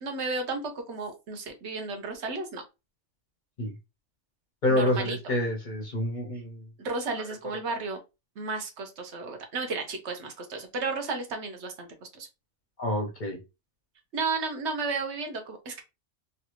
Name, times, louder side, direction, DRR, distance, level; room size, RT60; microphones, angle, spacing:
voice 1, 0.0-2.6 4.7-5.2 6.8-8.0 8.4-12.3 14.1-15.8, right 4 dB, 65° right, 5 dB, 1.0 m, -33 dB
voice 2, 4.6-6.7 12.8-13.4, left 1 dB, 50° left, 2 dB, 0.6 m, -28 dB
3.2 x 2.4 x 2.9 m, 0.26 s
omnidirectional pair, 1.3 m